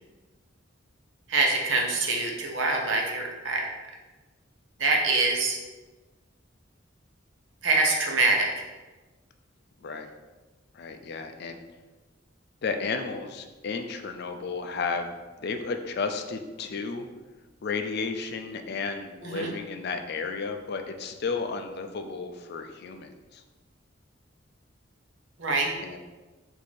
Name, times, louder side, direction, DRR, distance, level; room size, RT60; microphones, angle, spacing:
voice 1, 1.3-3.7 4.8-5.6 7.6-8.6 19.2-19.5 25.4-25.7, right 3 dB, 75° right, 1 dB, 0.8 m, -25 dB
voice 2, 9.8-10.1 10.7-11.6 12.6-15.1 15.4-17.1 17.6-23.4 25.8-26.0, left 4 dB, 55° left, 6 dB, 0.4 m, -33 dB
4.6 x 2.7 x 4.2 m, 1.2 s
head